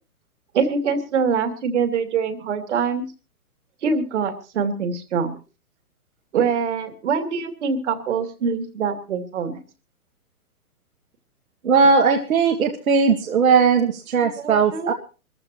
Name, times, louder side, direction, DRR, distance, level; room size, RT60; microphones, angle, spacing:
voice 1, 0.5-3.0 3.8-5.4 6.3-9.6 14.2-14.9, right 6 dB, 50° right, 7 dB, 2.6 m, -24 dB
voice 2, 11.6-14.9, right 5 dB, 70° right, 1 dB, 2.0 m, -18 dB
24.5 x 14.5 x 2.9 m, 0.34 s
hypercardioid pair, 155°, 44 cm